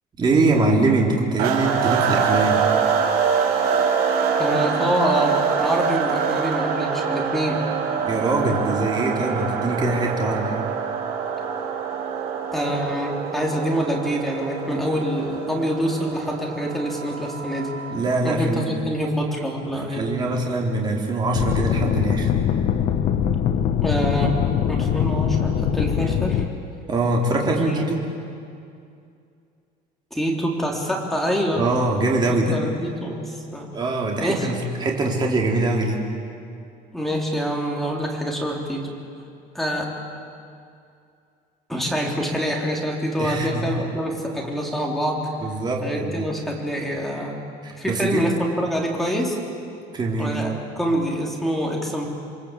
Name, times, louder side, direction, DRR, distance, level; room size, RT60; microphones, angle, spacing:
voice 1, 0.2-2.6 8.0-10.5 17.9-18.7 19.9-22.3 26.9-28.0 31.6-32.6 33.7-36.1 43.2-43.7 45.4-46.3 47.6-48.2 49.9-50.4, right 2 dB, 25° right, -1 dB, 3.9 m, -23 dB
sound 1, 1.4-18.1, right 6 dB, 60° right, 4.3 m, -25 dB
voice 2, 4.4-7.6 12.5-17.7 18.2-20.0 23.8-24.3 24.7-26.4 27.6-27.9 30.1-31.6 32.3-33.7 34.2-34.5 36.9-38.9 39.5-39.9 41.7-45.2 45.8-47.4 47.8-49.4 50.2-52.1, equal, ahead, -1 dB, 4.0 m, -26 dB
sound 2, 21.3-26.5, left 9 dB, 45° left, 1.3 m, -22 dB
28.5 x 23.5 x 8.5 m, 2.4 s
cardioid pair, 160°, 17 cm